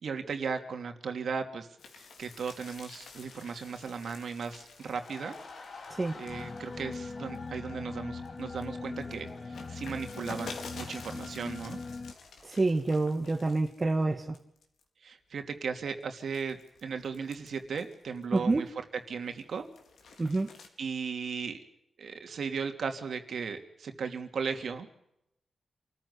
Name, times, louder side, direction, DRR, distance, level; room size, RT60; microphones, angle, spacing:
voice 1, 0.0-1.7 2.0-5.4 6.1-11.8 15.0-18.7 19.1-19.7 20.8-21.7 22.0-24.9, right 5 dB, 70° right, 2.9 m, -36 dB
sound 1, 1.8-7.7 8.1-14.0 14.3-14.8 15.4-18.7 19.1-20.7, left 4 dB, 90° left, 4.3 m, -49 dB
sound 2, 4.8-13.6 13.9-14.2, left 4 dB, 60° left, 5.4 m, -51 dB
sound 3, 6.2-12.1, left 3 dB, 35° left, 1.3 m, -41 dB
voice 2, 12.4-14.4 18.3-18.7 20.2-20.5, right 2 dB, 30° right, 1.6 m, -28 dB
28.0 x 14.5 x 9.8 m
wide cardioid pair, 105°, 0 cm